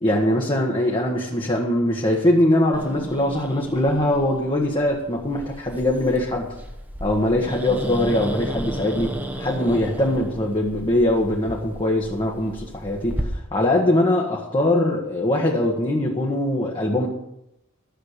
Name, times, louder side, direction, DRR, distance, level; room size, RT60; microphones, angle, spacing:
voice 1, 0.0-6.5 7.0-17.1, left 1 dB, 25° left, -2 dB, 1.4 m, -22 dB
Growling, 2.7-13.2, equal, 10° right, 1.1 m, -34 dB
13.0 x 7.5 x 6.7 m, 0.87 s
head